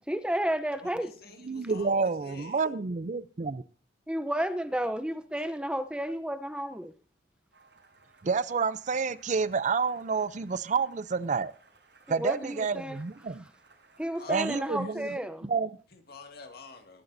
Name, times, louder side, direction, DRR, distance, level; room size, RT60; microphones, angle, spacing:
voice 1, 0.1-1.1 4.1-6.9 12.1-13.0 14.0-15.5, right 1 dB, 5° right, 0.6 m, -32 dB
voice 2, 0.7-2.7 14.1-15.1 15.9-17.0, left 3 dB, 60° left, 2.1 m, -48 dB
voice 3, 1.4-3.6 8.2-11.5 12.1-13.4 14.3-15.8, right 5 dB, 45° right, 0.5 m, -29 dB
sound 1, 7.5-14.7, right 3 dB, 85° right, 7.0 m, -61 dB
20.5 x 12.0 x 2.6 m
head